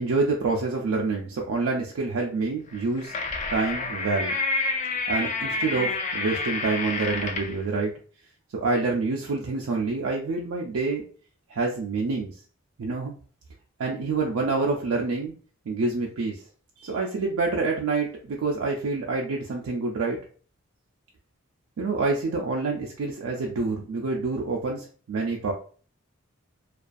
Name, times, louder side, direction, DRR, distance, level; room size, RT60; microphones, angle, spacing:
voice 1, 0.0-3.1 3.5-4.3 5.1-7.9 8.6-11.0 11.5-12.4 12.8-13.1 13.8-15.3 15.7-16.4 16.8-20.2 21.8-25.5, right 3 dB, 85° right, -1 dB, 0.4 m, -27 dB
sound 1, 2.7-7.6, left 3 dB, 35° left, 0.3 m, -29 dB
2.5 x 2.3 x 2.3 m, 0.41 s
head